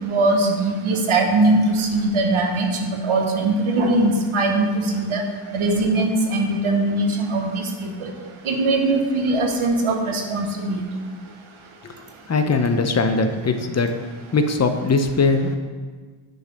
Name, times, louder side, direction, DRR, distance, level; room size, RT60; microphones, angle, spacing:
voice 1, 0.0-5.2 5.5-7.7 8.0-8.1 8.4-10.8, right 2 dB, 80° right, 2 dB, 1.1 m, -21 dB
voice 2, 12.3-13.9 14.3-15.5, left 3 dB, 35° left, 7 dB, 0.7 m, -20 dB
7.9 x 3.3 x 5.1 m, 1.5 s
cardioid pair, 55°, 48 cm